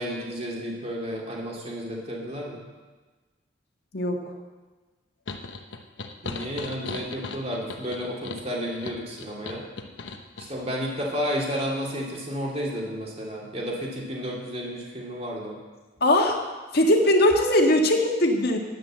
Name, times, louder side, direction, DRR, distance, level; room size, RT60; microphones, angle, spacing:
voice 1, 0.0-2.6 6.2-9.6 10.5-15.6, equal, 35° right, -2 dB, 2.8 m, -32 dB
sound 1, 5.3-10.5, left 3 dB, 90° left, 1.0 m, -38 dB
voice 2, 16.0-16.4 16.7-18.6, left 1 dB, 55° left, 2 dB, 1.7 m, -20 dB
10.5 x 9.9 x 7.6 m, 1.3 s
head